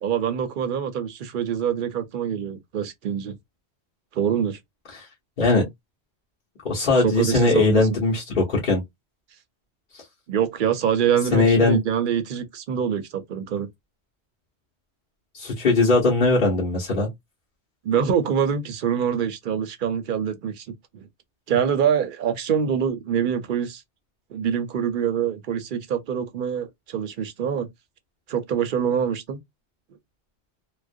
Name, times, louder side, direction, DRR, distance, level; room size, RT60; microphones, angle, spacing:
voice 1, 0.0-3.4 4.1-4.6 7.0-7.9 10.3-13.7 17.8-20.7 20.9-21.1 21.5-23.8 24.3-27.7 28.3-29.4, right 8 dB, 60° right, 0.6 m, -25 dB
voice 2, 6.6-8.8 9.9-10.0 11.3-11.8 15.3-17.1, left 3 dB, 50° left, 1.0 m, -20 dB
2.4 x 2.1 x 2.5 m
omnidirectional pair, 1.1 m